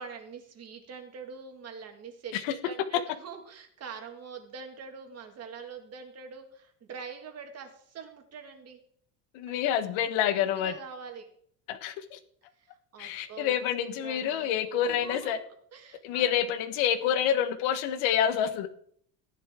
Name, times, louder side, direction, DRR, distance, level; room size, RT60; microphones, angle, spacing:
voice 1, 0.0-8.8 9.5-9.6 10.2-11.3 12.6-15.4 15.7-16.5, right 6 dB, 35° right, 4 dB, 2.0 m, -44 dB
voice 2, 9.3-10.7 11.7-12.2 13.0-15.4 16.0-18.7, left 9 dB, 85° left, 9 dB, 1.4 m, -28 dB
15.0 x 11.0 x 3.7 m, 0.62 s
cardioid pair, 155°, 45 cm